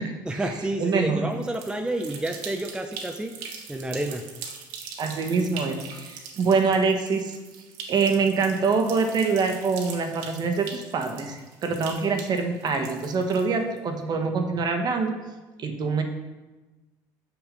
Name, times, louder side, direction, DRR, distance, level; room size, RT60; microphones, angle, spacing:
voice 1, 0.2-4.2, right 1 dB, 10° right, 4 dB, 0.6 m, -30 dB
voice 2, 0.8-1.3 5.0-7.4 7.9-15.1 15.6-16.0, right 4 dB, 45° right, 5 dB, 1.2 m, -25 dB
sound 1, 1.3-13.8, right 6 dB, 80° right, 1.2 m, -42 dB
6.2 x 6.2 x 5.2 m, 1.2 s
supercardioid pair, 90°, 10 cm